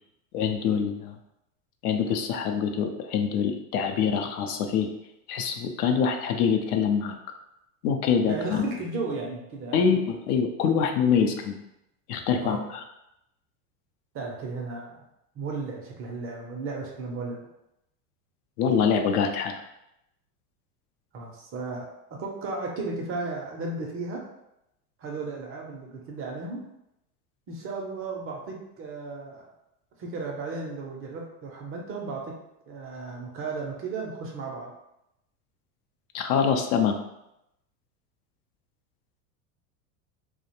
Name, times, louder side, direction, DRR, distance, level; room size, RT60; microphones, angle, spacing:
voice 1, 0.3-1.2 1.8-4.9 5.3-7.2 7.8-8.7 9.7-11.6 12.1-12.8 18.6-19.6 36.1-37.0, left 7 dB, 75° left, 5 dB, 0.5 m, -25 dB
voice 2, 8.3-9.9 12.4-12.7 14.1-15.0 15.4-17.4 21.1-24.3 25.0-26.6 27.5-29.5 30.0-32.4 32.7-34.7, right 3 dB, 30° right, 0 dB, 0.5 m, -35 dB
2.4 x 2.1 x 2.8 m, 0.84 s
hypercardioid pair, 105°, 46 cm